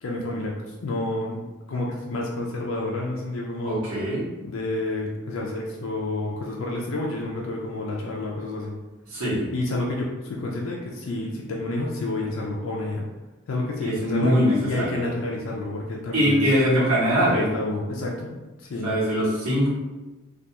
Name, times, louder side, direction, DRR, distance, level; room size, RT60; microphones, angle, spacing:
voice 1, 0.0-3.8 4.4-8.7 9.5-13.0 13.5-16.4 17.3-18.9, left 2 dB, 65° left, -2 dB, 0.4 m, -29 dB
voice 2, 3.6-4.2 9.1-9.4 13.8-15.0 16.1-17.5 18.8-19.7, equal, 90° right, -7 dB, 1.0 m, -22 dB
2.3 x 2.2 x 2.8 m, 1.1 s
head